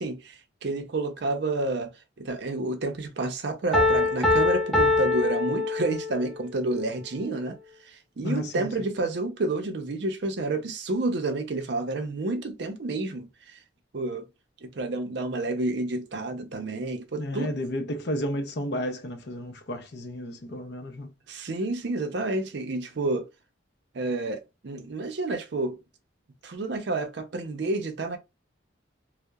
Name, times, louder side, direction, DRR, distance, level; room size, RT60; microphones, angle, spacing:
voice 1, 0.0-1.9 2.2-7.6 7.9-13.6 13.9-14.3 14.6-17.5 21.3-23.3 23.9-25.8 26.4-28.2, right 2 dB, 60° right, 0.5 m, -30 dB
Piano, 3.7-6.3, left 3 dB, ahead, 0.4 m, -23 dB
voice 2, 8.2-8.7 17.2-21.1, left 1 dB, 55° left, 0.5 m, -32 dB
2.7 x 2.0 x 2.2 m
head